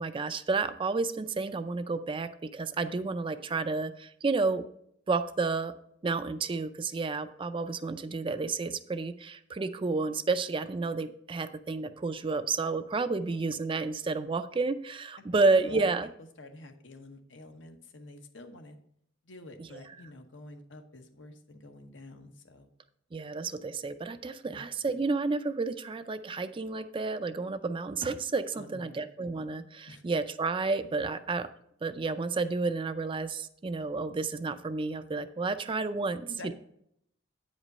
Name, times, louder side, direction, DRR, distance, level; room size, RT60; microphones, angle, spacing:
voice 1, 0.0-4.6 5.1-5.7 6.0-16.1 19.6-19.7 23.1-31.5 31.8-36.5, right 3 dB, 25° right, 11 dB, 0.4 m, -31 dB
voice 2, 16.4-18.8 19.2-22.7 24.4-24.7 28.5-29.0 29.9-30.0 36.3-36.5, left 2 dB, 70° left, 6 dB, 1.0 m, -48 dB
9.0 x 5.1 x 5.3 m, 0.72 s
head